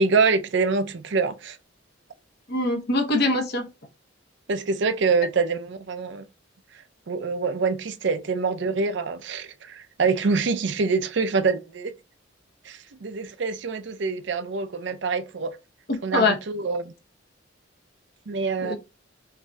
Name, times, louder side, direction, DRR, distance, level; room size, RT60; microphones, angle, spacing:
voice 1, 0.0-1.6 4.5-6.2 7.1-11.9 12.6-15.6 16.0-16.9 18.3-18.7, right 4 dB, 65° right, 0.6 m, -25 dB
voice 2, 2.5-3.7 16.1-16.3 18.6-18.8, left 2 dB, 60° left, 1.0 m, -22 dB
5.6 x 2.7 x 2.3 m
head